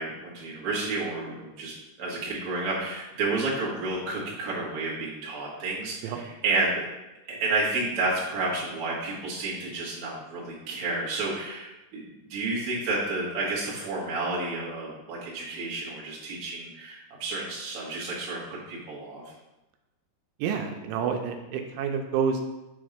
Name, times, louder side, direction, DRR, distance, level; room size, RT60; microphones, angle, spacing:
voice 1, 0.0-6.8 7.3-19.2, right 3 dB, 60° right, -6 dB, 1.5 m, -31 dB
voice 2, 20.4-22.4, right 6 dB, 90° right, 4 dB, 3.0 m, -28 dB
7.3 x 3.1 x 5.0 m, 0.99 s
omnidirectional pair, 5.2 m